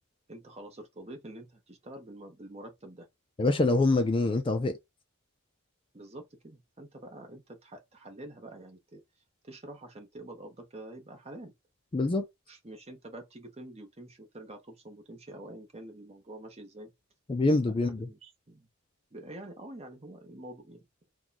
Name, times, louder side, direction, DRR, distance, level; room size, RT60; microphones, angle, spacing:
voice 1, 0.3-3.1 5.9-9.0 9.4-11.5 12.5-16.9 17.8-18.7 19.1-21.1, right 1 dB, 30° right, 0.9 m, -47 dB
voice 2, 3.4-4.8 11.9-12.3 17.3-18.1, left 2 dB, 25° left, 0.3 m, -25 dB
3.0 x 2.3 x 3.9 m
head